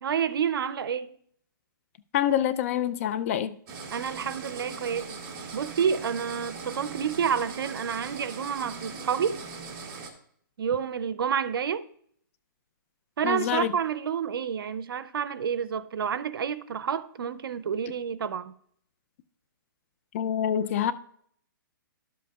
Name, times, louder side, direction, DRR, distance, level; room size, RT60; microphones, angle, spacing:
voice 1, 0.0-1.1 3.9-5.2 5.5-9.4 10.6-11.9 13.2-18.5, right 7 dB, 75° right, 0.6 m, -29 dB
voice 2, 2.1-3.5 13.2-13.7 20.1-20.9, left 10 dB, 40° left, 0.4 m, -26 dB
sound 1, 3.7-10.1, right 4 dB, 30° right, 1.5 m, -40 dB
11.5 x 7.7 x 2.3 m
hypercardioid pair, 150°, 12 cm